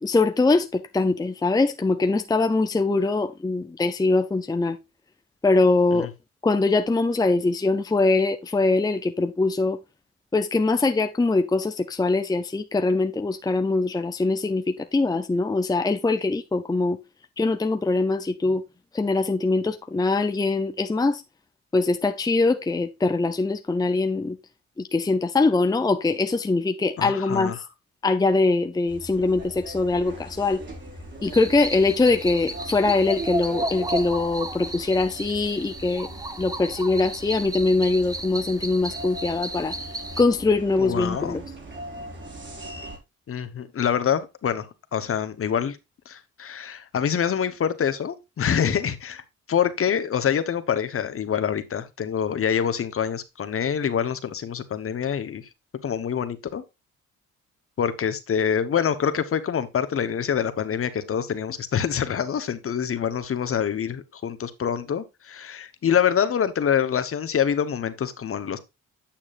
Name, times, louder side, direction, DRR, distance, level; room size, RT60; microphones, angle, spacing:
voice 1, 0.0-4.8 5.4-6.1 6.4-9.8 10.3-17.0 17.4-18.6 18.9-21.2 21.7-24.4 24.8-27.6 28.0-30.6 31.2-36.1 36.4-39.7 40.2-41.4, left 3 dB, 15° left, 0.7 m, -22 dB
voice 2, 27.0-27.5 40.8-41.4 43.3-45.8 46.1-49.2 49.5-55.4 55.8-56.6 57.8-68.6, left 8 dB, 45° left, 1.1 m, -26 dB
sound 1, 28.9-43.0, right 1 dB, 40° right, 4.4 m, -40 dB
sound 2, 31.2-40.2, right 1 dB, 10° right, 0.9 m, -34 dB
8.8 x 7.2 x 2.5 m
cardioid pair, 90°, 30 cm